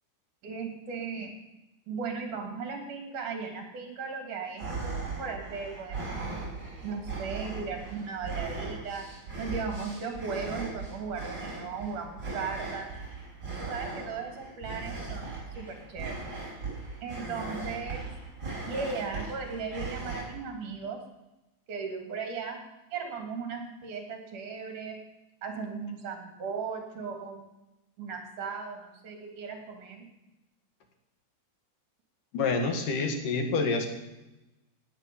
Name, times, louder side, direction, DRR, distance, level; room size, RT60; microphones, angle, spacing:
voice 1, 0.4-1.3 1.9-6.4 6.8-9.1 9.4-12.9 13.6-16.1 17.0-18.1 18.7-21.0 21.7-22.6 22.9-25.0 25.4-27.5 28.0-30.1, right 5 dB, 75° right, 3 dB, 4.2 m, -37 dB
sound 1, 4.6-20.2, right 3 dB, 30° right, 5.6 m, -38 dB
voice 2, 32.3-33.9, left 4 dB, 80° left, 4 dB, 3.4 m, -27 dB
17.0 x 9.3 x 7.1 m, 0.97 s
omnidirectional pair, 3.6 m